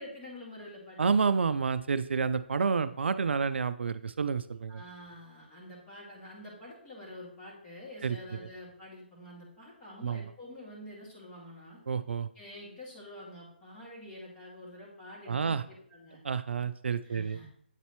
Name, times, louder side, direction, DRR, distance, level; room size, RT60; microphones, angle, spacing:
voice 1, 0.0-1.1 4.7-11.8 12.3-16.2 17.0-17.5, left 1 dB, 20° left, -6 dB, 2.2 m, -47 dB
voice 2, 1.0-4.8 8.0-8.2 10.0-10.2 11.9-12.3 15.3-15.6 16.2-17.4, right 5 dB, 80° right, 13 dB, 0.3 m, -29 dB
8.1 x 4.0 x 3.0 m, 0.63 s
hypercardioid pair, 150°, 6 cm